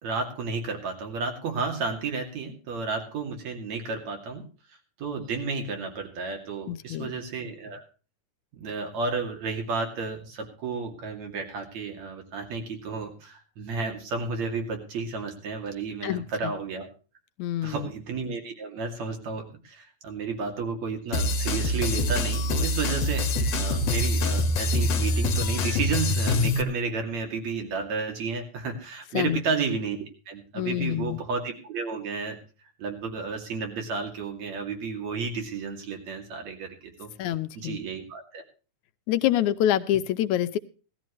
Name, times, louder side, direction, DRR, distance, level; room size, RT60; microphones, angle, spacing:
voice 1, 0.0-4.5 5.0-7.8 8.5-16.9 17.6-30.0 30.3-32.4 32.8-37.1 37.6-38.4, right 4 dB, 65° right, 4 dB, 3.6 m, -32 dB
voice 2, 6.7-7.1 16.0-16.3 17.4-17.9 29.1-29.4 30.5-31.2 37.2-37.8 39.1-40.6, left 12 dB, 80° left, 11 dB, 2.2 m, -26 dB
sound 1, 21.1-26.6, left 1 dB, 60° left, 2.6 m, -25 dB
17.5 x 13.5 x 3.1 m, 0.36 s
omnidirectional pair, 3.4 m